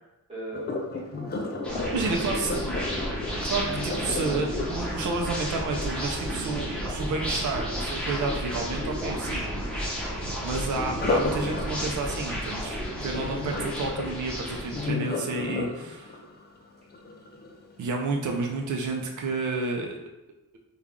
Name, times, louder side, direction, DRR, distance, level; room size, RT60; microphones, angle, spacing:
voice 1, 0.0-1.5 2.0-2.5, equal, 20° right, -9 dB, 1.4 m, -41 dB
Sink (filling or washing), 0.5-6.5 10.9-17.9 18.4-18.7 19.2-19.3, left 3 dB, 30° left, 0.4 m, -33 dB
sound 1, 1.6-14.9, equal, 5° left, 0.8 m, -32 dB
voice 2, 1.9-2.6 3.5-9.5 10.4-16.2 17.8-20.0, right 3 dB, 65° right, 1 dB, 0.6 m, -30 dB
3.3 x 2.3 x 3.6 m, 0.89 s
wide cardioid pair, 150°, 31 cm